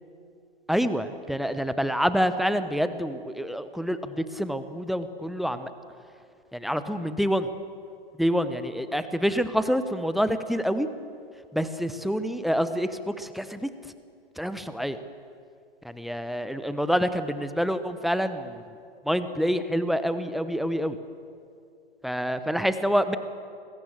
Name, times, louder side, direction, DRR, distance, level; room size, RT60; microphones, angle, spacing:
voice 1, 0.7-5.7 6.5-7.5 8.2-10.9 11.5-13.7 14.4-15.0 15.8-18.6 19.0-21.0 22.0-23.2, equal, ahead, 11 dB, 0.9 m, -27 dB
29.5 x 21.5 x 7.6 m, 2.4 s
figure-of-eight pair, 115°, 31 cm